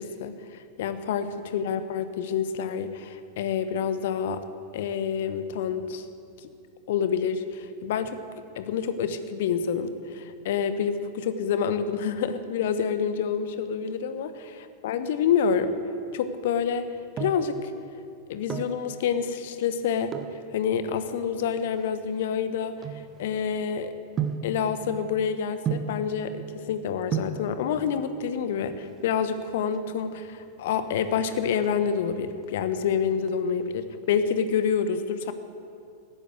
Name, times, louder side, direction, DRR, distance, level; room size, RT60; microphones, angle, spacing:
voice 1, 0.0-4.4 4.7-6.0 6.4-6.5 6.9-8.2 8.5-15.7 16.1-16.9 17.2-17.7 18.3-20.1 20.5-23.9 24.4-35.3, left 7 dB, 55° left, 11 dB, 1.0 m, -28 dB
sound 1, 16.7-17.6 18.3-18.8 20.1-20.4 21.2-23.6 24.2-24.6 25.7-26.1 26.8-26.9 27.1-27.5 28.6-29.1 29.4-29.5 29.7-29.9 30.3-30.7 31.0-32.0 32.4-32.9 33.2-34.4 34.7-34.8, right 7 dB, 25° right, 1.1 m, -33 dB
15.5 x 11.0 x 8.0 m, 2.5 s
figure-of-eight pair, 90°, 0 cm